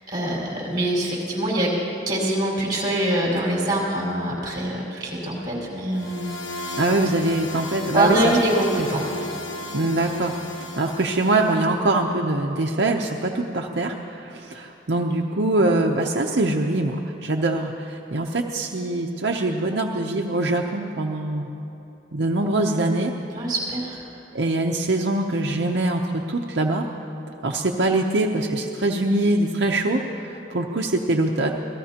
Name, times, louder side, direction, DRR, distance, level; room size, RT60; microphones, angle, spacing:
voice 1, 0.1-1.7 2.1-6.4 7.9-9.3 23.3-24.0, right 1 dB, 25° right, -5 dB, 4.9 m, -24 dB
sound 1, 5.9-11.7, left 2 dB, 80° left, 1.2 m, -34 dB
voice 2, 6.8-8.3 8.7-8.9 9.7-10.3 10.8-21.5 22.1-23.1 24.3-26.8 27.4-31.5, right 2 dB, 70° right, 1 dB, 0.8 m, -23 dB
27.0 x 18.0 x 2.9 m, 2.8 s
head